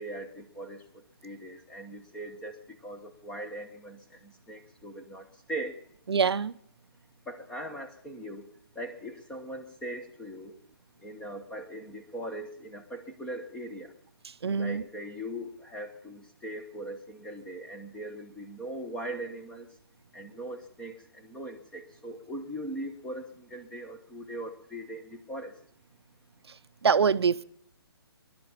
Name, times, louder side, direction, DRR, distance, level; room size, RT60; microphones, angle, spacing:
voice 1, 0.0-5.8 7.3-8.5 8.7-10.5 11.0-13.9 14.6-19.7 20.1-25.6, right 1 dB, 5° left, 5 dB, 1.0 m, -40 dB
voice 2, 6.1-6.5 14.4-14.8 26.8-27.4, right 6 dB, 75° right, 14 dB, 0.6 m, -24 dB
19.5 x 11.5 x 5.7 m, 0.69 s
hypercardioid pair, 155°, 13 cm